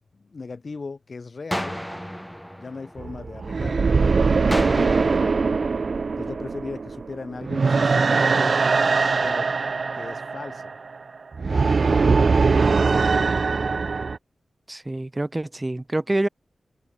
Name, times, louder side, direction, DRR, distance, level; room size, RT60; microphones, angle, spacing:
voice 1, 0.1-1.8 2.6-4.2 4.4-5.6 6.2-8.6 9.2-9.5 9.9-10.7 11.5-12.7, left 4 dB, 60° left, 6.9 m, -38 dB
sound 1, 1.5-3.6 4.5-6.6, equal, ahead, 5.3 m, -34 dB
sound 2, 3.0-14.2, right 4 dB, 65° right, 1.7 m, -21 dB
voice 2, 14.7-16.3, right 2 dB, 25° right, 1.2 m, -26 dB
cardioid pair, 50°, 0 cm